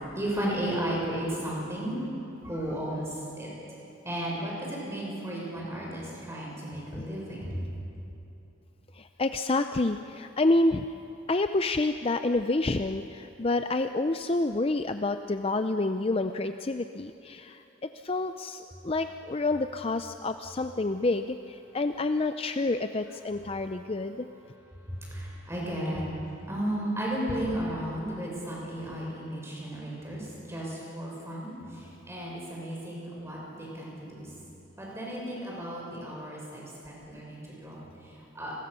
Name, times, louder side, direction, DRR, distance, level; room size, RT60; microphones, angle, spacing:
voice 1, 0.1-3.5 4.0-7.7 24.9-26.2 26.5-34.3 34.8-38.5, right 1 dB, 15° right, -4 dB, 6.7 m, -34 dB
voice 2, 9.0-10.8 11.3-24.3, left 2 dB, 30° left, 8 dB, 0.5 m, -28 dB
30.0 x 22.0 x 6.9 m, 2.9 s
head